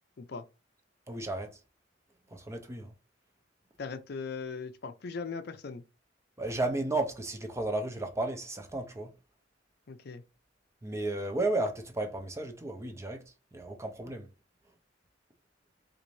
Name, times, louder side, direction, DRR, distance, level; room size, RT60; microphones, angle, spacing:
voice 1, 1.1-1.6 2.3-2.9 6.4-9.1 10.8-13.2 13.5-14.3, right 2 dB, 15° right, 0.5 m, -33 dB
voice 2, 3.8-5.8 9.9-10.2, left 4 dB, 55° left, 0.5 m, -39 dB
4.0 x 2.5 x 3.1 m
head